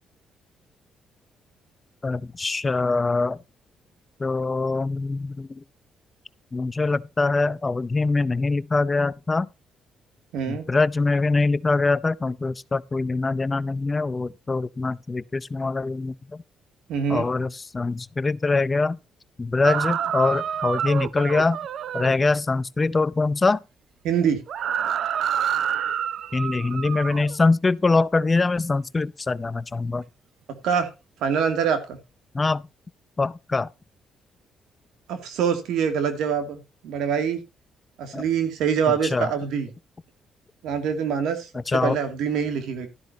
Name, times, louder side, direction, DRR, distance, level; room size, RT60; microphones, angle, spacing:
voice 1, 2.0-3.4 4.2-5.6 6.5-9.5 10.5-16.4 17.1-19.0 19.4-21.6 21.9-23.6 26.3-30.0 32.3-32.6 33.2-33.7 38.1-38.2 39.1-39.3 41.7-42.0, left 3 dB, 25° left, 0.5 m, -23 dB
voice 2, 10.3-10.7 16.9-17.3 24.0-24.4 30.6-30.9 31.2-32.0 35.1-37.4 38.0-39.7 40.6-42.9, right 7 dB, 85° right, 2.3 m, -25 dB
sound 1, 19.6-22.2 24.5-27.4, right 9 dB, 65° right, 0.6 m, -27 dB
12.5 x 12.0 x 2.8 m
cardioid pair, 90°, 0 cm